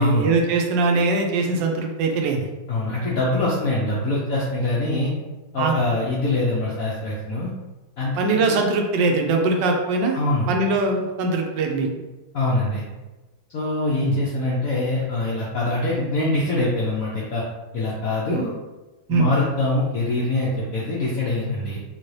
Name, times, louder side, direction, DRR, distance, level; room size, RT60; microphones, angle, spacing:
voice 1, 0.0-2.5 5.6-5.8 8.2-10.2 10.5-11.9 14.0-14.2 18.3-18.4 19.1-19.3, right 3 dB, 75° right, 2 dB, 1.1 m, -21 dB
voice 2, 2.7-5.1 5.5-7.5 8.0-8.5 10.1-10.5 12.3-12.8 13.5-17.4 17.7-18.5 19.1-21.8, left 2 dB, 80° left, -6 dB, 0.7 m, -24 dB
3.8 x 2.8 x 3.1 m, 1.1 s
omnidirectional pair, 2.3 m